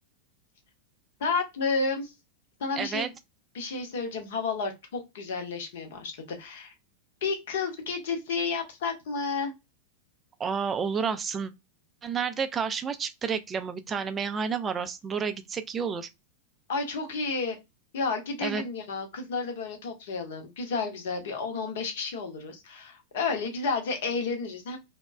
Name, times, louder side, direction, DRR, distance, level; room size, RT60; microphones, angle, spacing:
voice 1, 1.2-2.1 2.6-3.1 3.5-6.7 7.2-9.5 16.7-17.6 17.9-24.8, left 4 dB, 55° left, 0.7 m, -31 dB
voice 2, 2.8-3.1 10.4-11.5 12.0-16.1 18.4-18.6, right 6 dB, 20° right, 0.3 m, -30 dB
2.9 x 2.1 x 2.3 m
figure-of-eight pair, 90°, 0 cm